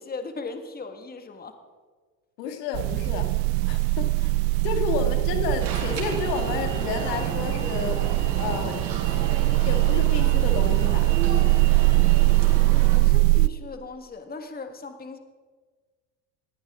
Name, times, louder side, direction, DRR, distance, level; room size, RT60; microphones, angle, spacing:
voice 1, 0.0-1.6 12.7-15.2, left 3 dB, 20° left, 7 dB, 1.7 m, -38 dB
voice 2, 2.4-3.3 3.7-4.3 4.6-8.0 8.3-9.3 9.5-11.2, left 6 dB, 75° left, 5 dB, 2.3 m, -31 dB
sound 1, 2.7-13.5, right 25 dB, 50° right, 0.4 m, -22 dB
Alarm, 5.6-13.0, right 4 dB, 85° right, 3.8 m, -34 dB
19.5 x 16.0 x 3.7 m, 1.5 s
hypercardioid pair, 80°, 49 cm